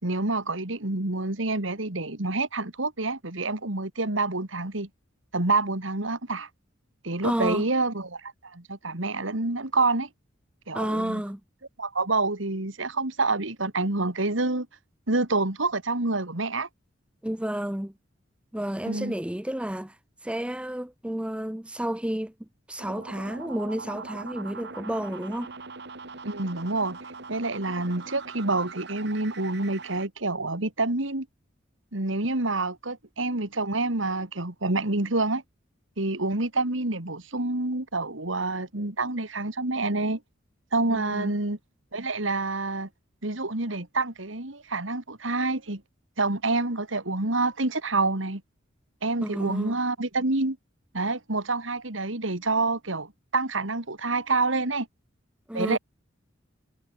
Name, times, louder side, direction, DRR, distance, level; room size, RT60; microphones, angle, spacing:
voice 1, 0.0-4.9 5.3-6.5 7.0-10.1 10.7-11.2 11.8-14.7 15.1-16.7 18.9-19.1 26.2-27.0 27.3-31.3 31.9-35.4 36.0-40.2 40.7-41.6 41.9-42.9 43.2-45.8 46.2-48.4 49.0-50.6 50.9-54.9 55.5-55.8, right 2 dB, 80° right, 2.8 m, -27 dB
voice 2, 7.2-7.7 10.7-11.4 17.2-17.9 18.5-20.0 20.2-22.3 22.7-25.5 40.9-41.3 49.2-49.8 55.5-55.8, equal, 5° right, 0.8 m, -31 dB
sound 1, 22.8-30.1, right 3 dB, 60° right, 3.3 m, -41 dB
head